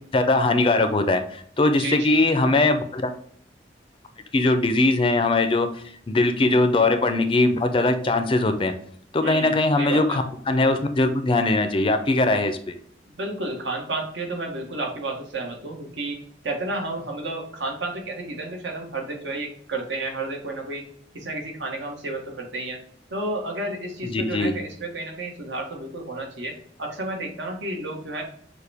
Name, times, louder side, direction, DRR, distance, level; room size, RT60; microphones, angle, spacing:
voice 1, 0.1-3.1 4.3-8.7 9.1-12.7 24.1-24.5, left 2 dB, 30° left, 8 dB, 0.4 m, -21 dB
voice 2, 1.7-2.2 9.2-10.2 13.1-20.8 21.1-22.8 23.1-28.2, right 2 dB, 80° right, 1 dB, 1.1 m, -31 dB
6.5 x 2.2 x 3.4 m, 0.62 s
head